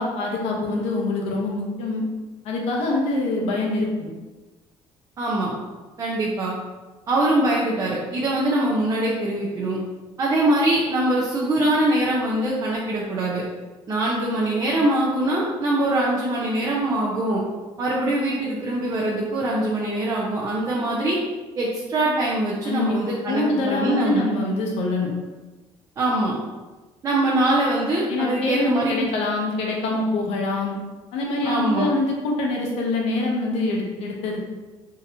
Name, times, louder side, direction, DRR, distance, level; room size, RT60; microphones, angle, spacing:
voice 1, 0.0-2.0 2.4-4.1 22.6-23.0 23.3-25.1 28.1-30.7 31.1-34.5, left 2 dB, 85° left, -1 dB, 0.8 m, -24 dB
voice 2, 5.2-5.5 6.0-6.5 7.1-9.8 10.2-13.4 13.9-17.4 17.8-21.2 21.6-24.3 26.0-26.3 27.0-29.1 31.4-31.9, right 1 dB, 35° right, -5 dB, 0.6 m, -23 dB
3.7 x 2.8 x 2.7 m, 1.2 s
cardioid pair, 140°, 10 cm